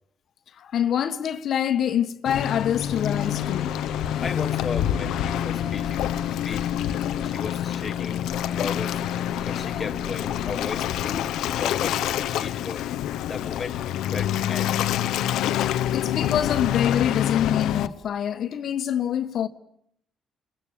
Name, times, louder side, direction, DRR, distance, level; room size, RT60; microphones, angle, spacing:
voice 1, 0.5-3.7 15.9-19.5, left 9 dB, 65° left, 1.5 m, -25 dB
Waves surf, 2.3-17.9, left 11 dB, 85° left, 1.0 m, -27 dB
sound 1, 2.9-12.3, right 2 dB, 15° right, 1.2 m, -43 dB
voice 2, 4.2-6.1 6.4-6.7 7.2-8.2 8.5-9.0 9.5-12.8 13.3-13.8 14.1-14.9, left 5 dB, 35° left, 1.4 m, -35 dB
28.5 x 21.5 x 7.0 m
cardioid pair, 90°, 0 cm